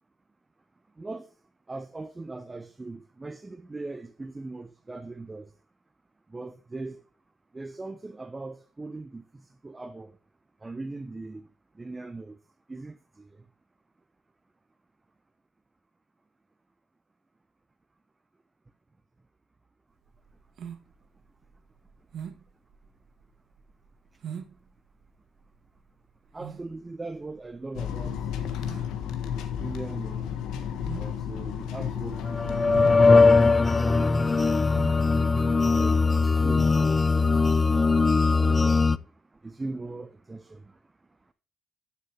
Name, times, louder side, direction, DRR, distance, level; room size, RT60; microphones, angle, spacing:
voice 1, 1.0-1.3 1.7-5.5 6.3-7.0 7.5-10.1 10.6-11.5 11.7-12.4 12.7-13.3 26.3-28.2 29.6-30.3 31.0-33.3 33.7-34.2 34.9-37.9 38.4-39.1 39.4-40.8, right 3 dB, 20° right, 0.7 m, -40 dB
sound 1, 20.0-36.3, right 7 dB, 70° right, 1.4 m, -44 dB
sound 2, 27.7-33.1, left 8 dB, 90° left, 1.4 m, -32 dB
sound 3, 32.2-39.0, left 4 dB, 25° left, 0.4 m, -20 dB
11.0 x 6.6 x 3.4 m
cardioid pair, 90°, 0 cm